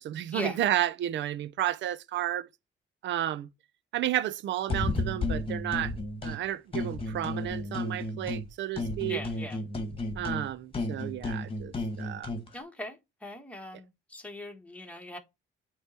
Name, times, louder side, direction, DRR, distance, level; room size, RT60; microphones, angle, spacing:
voice 1, 0.0-2.5 3.0-3.5 3.9-5.9 6.2-9.2 10.2-12.3, right 12 dB, 65° right, 0.5 m, -32 dB
sound 1, 4.7-6.4 6.7-8.5 8.8-12.5, left 2 dB, 30° left, 1.4 m, -33 dB
voice 2, 9.0-9.6 12.5-15.2, left 1 dB, 5° left, 1.5 m, -40 dB
8.0 x 3.1 x 4.3 m
cardioid pair, 90°, 20 cm